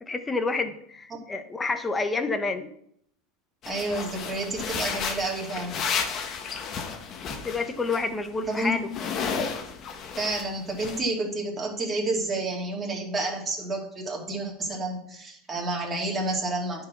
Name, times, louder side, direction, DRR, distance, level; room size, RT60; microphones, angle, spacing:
voice 1, 0.0-2.7 7.4-8.9, left 3 dB, 15° left, 8 dB, 1.0 m, -29 dB
sound 1, 3.6-8.0 8.3-10.5 10.8-11.0, left 6 dB, 40° left, 1.2 m, -32 dB
voice 2, 3.7-5.8 8.5-8.8 10.2-16.8, right 2 dB, 20° right, -2 dB, 2.8 m, -30 dB
10.5 x 4.8 x 5.9 m, 0.70 s
supercardioid pair, 125°, 0 cm